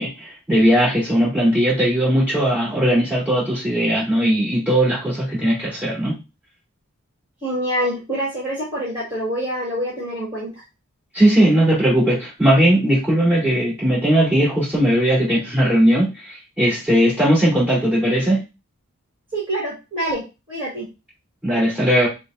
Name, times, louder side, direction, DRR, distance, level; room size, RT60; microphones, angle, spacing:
voice 1, 0.0-6.2 11.1-18.4 21.4-22.1, right 1 dB, 5° right, -7 dB, 2.3 m, -18 dB
voice 2, 7.4-10.5 19.3-20.2 20.5-20.8, right 1 dB, 25° right, -7 dB, 1.6 m, -25 dB
6.6 x 2.2 x 2.5 m, 0.27 s
head